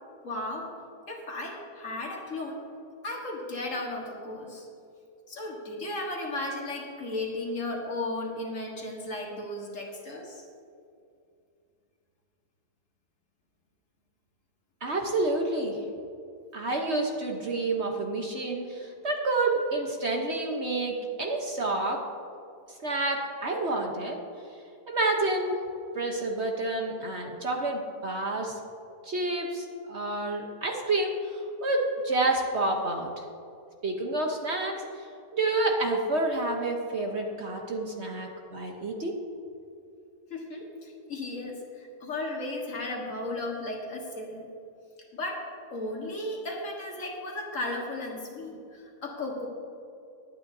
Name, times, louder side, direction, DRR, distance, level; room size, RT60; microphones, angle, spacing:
voice 1, 0.2-0.7 1.1-2.6 3.0-4.7 5.3-10.4 40.3-44.5 45.1-49.5, left 2 dB, 50° left, -1 dB, 1.8 m, -35 dB
voice 2, 14.8-15.8 16.5-22.0 22.8-24.2 24.9-25.6 25.9-28.6 29.0-33.2 33.8-34.7 35.3-39.1, right 2 dB, 50° right, 1 dB, 1.1 m, -29 dB
21.0 x 8.9 x 2.7 m, 2.5 s
omnidirectional pair, 1.7 m